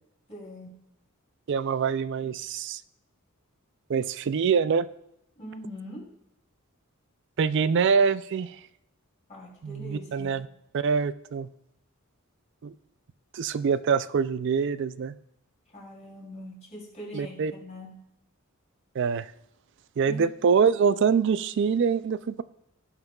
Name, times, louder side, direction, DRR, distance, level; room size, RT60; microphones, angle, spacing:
voice 1, 0.3-0.7 5.4-6.1 9.3-10.3 15.7-17.9 20.0-20.2, left 1 dB, 30° left, -4 dB, 3.1 m, -42 dB
voice 2, 1.5-2.8 3.9-4.9 7.4-8.6 9.6-10.5 10.7-11.5 12.6-12.7 13.3-15.2 17.1-17.5 19.0-19.3 20.0-22.4, right 6 dB, 55° right, 15 dB, 0.3 m, -25 dB
16.5 x 5.9 x 2.3 m, 0.82 s
head